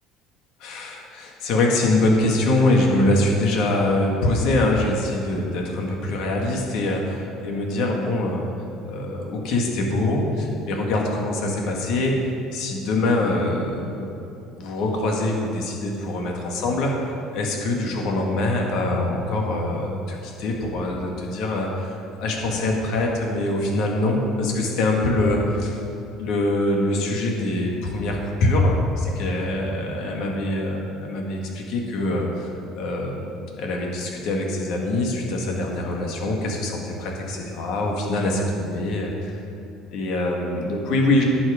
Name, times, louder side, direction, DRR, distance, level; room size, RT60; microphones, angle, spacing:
voice 1, 0.6-8.4 8.9-12.2 12.5-14.1 14.5-25.8 26.2-32.5 32.8-33.3 33.6-39.4 39.9-41.2, left 2 dB, 50° left, 0 dB, 1.7 m, -24 dB
18.5 x 6.2 x 5.0 m, 2.9 s
cardioid pair, 180°, 0 cm